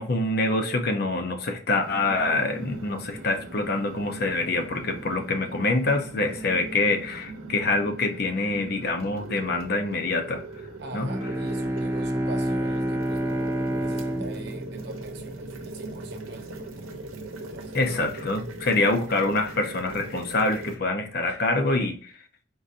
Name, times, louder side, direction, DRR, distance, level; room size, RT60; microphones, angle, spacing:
voice 1, 0.0-10.4 10.9-11.1 17.7-22.1, left 2 dB, 50° left, 0.6 m, -25 dB
sound 1, 1.8-20.8, right 2 dB, 85° right, 0.8 m, -40 dB
voice 2, 10.8-16.9 17.4-18.0, right 2 dB, 55° right, 0.6 m, -44 dB
Bowed string instrument, 10.9-15.8, right 1 dB, 10° right, 0.3 m, -29 dB
3.8 x 2.5 x 4.0 m
head